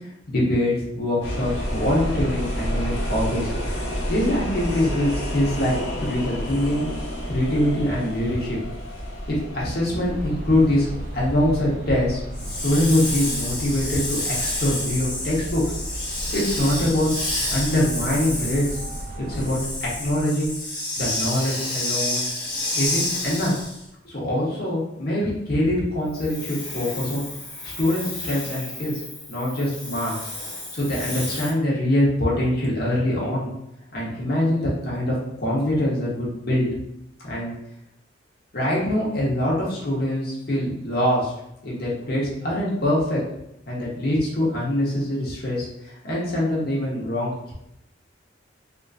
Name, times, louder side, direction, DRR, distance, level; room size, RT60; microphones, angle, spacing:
voice 1, 0.3-3.5 4.1-6.9 7.2-8.6 9.3-10.9 11.1-12.2 12.6-15.6 16.3-17.1 17.5-18.6 19.2-20.5 21.0-22.3 22.7-23.6 24.0-27.2 27.6-28.9 29.3-30.2 30.7-33.5 33.9-36.7 37.2-37.5 38.5-41.3 41.6-43.2 43.7-47.5, left 1 dB, 55° left, -5 dB, 1.1 m, -24 dB
sound 1, 1.2-20.2, equal, 85° left, 1.0 m, -32 dB
sound 2, 9.9-19.6, equal, 45° right, 0.3 m, -36 dB
Hiss, 12.3-23.8 26.1-31.5, left 2 dB, 25° left, 1.3 m, -30 dB
3.6 x 2.5 x 2.5 m, 0.82 s
head